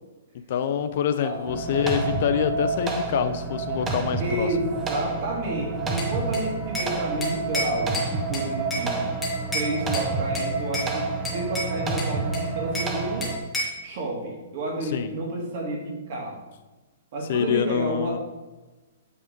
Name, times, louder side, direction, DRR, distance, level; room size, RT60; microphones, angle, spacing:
voice 1, 0.5-4.5 14.8-15.1 17.3-18.2, left 8 dB, 45° left, 11 dB, 0.4 m, -26 dB
sound 1, 1.5-13.4, right 3 dB, 10° right, 0.6 m, -29 dB
voice 2, 4.2-9.1 9.5-13.3 13.8-16.4 17.1-18.2, right 1 dB, 40° right, -1 dB, 1.9 m, -30 dB
Bell / Glass, 6.0-6.9 7.2-8.9 9.2-10.1 10.3-10.9 11.2-12.9 13.2-13.8, left 1 dB, 5° left, 1.4 m, -31 dB
8.4 x 3.6 x 5.2 m, 1.2 s
hypercardioid pair, 175°, 0 cm